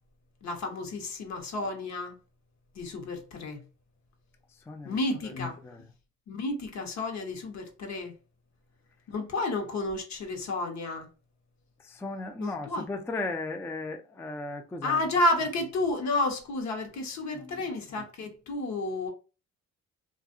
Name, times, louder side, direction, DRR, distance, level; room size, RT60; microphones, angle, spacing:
voice 1, 0.4-2.2 2.7-3.6 4.8-5.6 6.3-8.1 9.1-11.1 12.4-12.8 14.8-19.1, left 2 dB, 65° left, 0.9 m, -31 dB
voice 2, 4.7-5.0 5.6-5.8 11.8-15.0 17.3-17.5, left 3 dB, 10° left, 0.3 m, -36 dB
2.6 x 2.4 x 2.5 m
cardioid pair, 90°, 30 cm